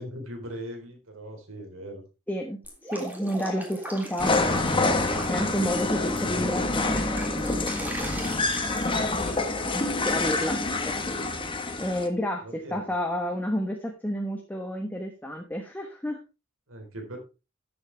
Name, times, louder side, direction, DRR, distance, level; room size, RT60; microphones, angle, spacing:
voice 1, 0.0-2.0 12.4-12.9 16.7-17.2, right 1 dB, 70° right, 4 dB, 3.9 m, -40 dB
voice 2, 2.3-8.2 9.4-10.6 10.8-11.2 11.8-16.2, equal, 10° left, 2 dB, 1.2 m, -31 dB
Drip, 2.6-6.2 6.6-9.7, right 1 dB, 10° right, 3.3 m, -39 dB
sound 1, 4.2-12.1, left 2 dB, 25° left, 1.4 m, -27 dB
13.0 x 8.0 x 3.4 m, 0.30 s
head